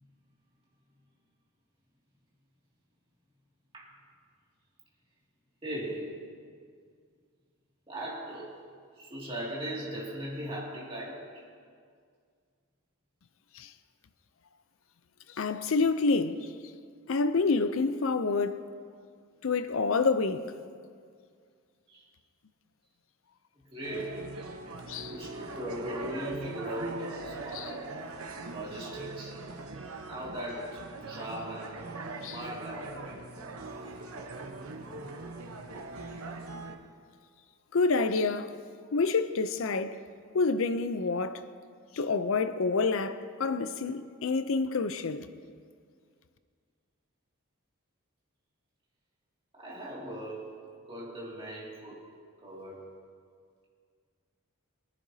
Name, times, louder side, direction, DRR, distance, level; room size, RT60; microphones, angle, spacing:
voice 1, 5.6-6.2 7.9-8.5 9.0-11.4 21.9-22.0 23.7-24.5 25.1-27.9 28.5-29.4 30.0-31.8 32.2-33.2 49.5-52.0 52.4-52.9, right 1 dB, 25° right, 2.3 m, -39 dB
voice 2, 15.4-16.5 17.1-18.6 19.4-20.5 24.9-25.1 27.5-27.7 32.2-32.4 37.7-38.6 38.9-40.0 40.3-41.4 41.9-45.3, left 4 dB, 65° left, 0.5 m, -28 dB
sound 1, 23.8-36.8, right 3 dB, 80° right, 0.9 m, -41 dB
21.5 x 10.5 x 2.8 m
head